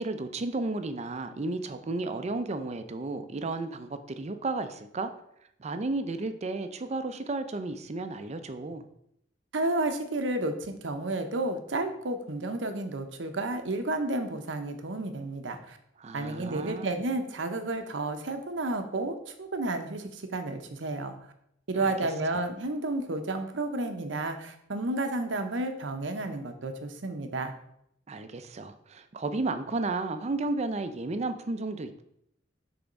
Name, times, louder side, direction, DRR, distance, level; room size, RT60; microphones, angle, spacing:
voice 1, 0.0-5.1 5.6-8.9 16.0-16.9 21.8-21.9 22.3-22.4 28.1-32.0, right 2 dB, 35° right, 9 dB, 0.5 m, -33 dB
voice 2, 9.5-15.8 16.1-21.1 21.7-27.5, right 2 dB, 80° right, 7 dB, 0.8 m, -31 dB
6.8 x 3.5 x 5.2 m, 0.75 s
head